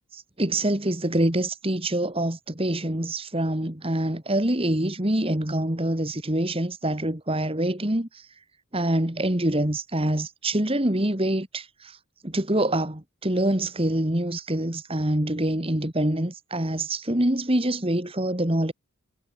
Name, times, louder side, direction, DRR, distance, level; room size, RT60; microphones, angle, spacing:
voice 1, 0.1-8.3 8.7-12.0 12.2-18.7, right 1 dB, 25° right, 2.0 m, -25 dB
head